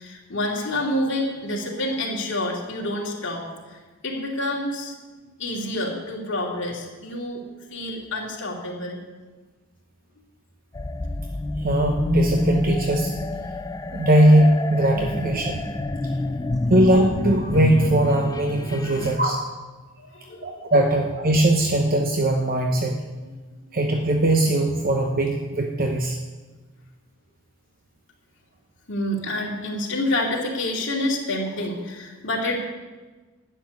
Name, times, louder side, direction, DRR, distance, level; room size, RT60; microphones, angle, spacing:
voice 1, 0.0-4.9 5.4-9.0 15.5-15.7 18.8-19.2 20.0-20.5 28.9-32.6, left 1 dB, 55° left, -3 dB, 2.8 m, -28 dB
sound 1, 10.7-19.2, left 2 dB, 15° left, 0.4 m, -27 dB
voice 2, 11.6-13.1 13.9-15.6 16.7-19.4 20.4-23.0 23.7-26.2, right 1 dB, 40° right, 2 dB, 0.9 m, -20 dB
12.0 x 6.8 x 9.6 m, 1.3 s
head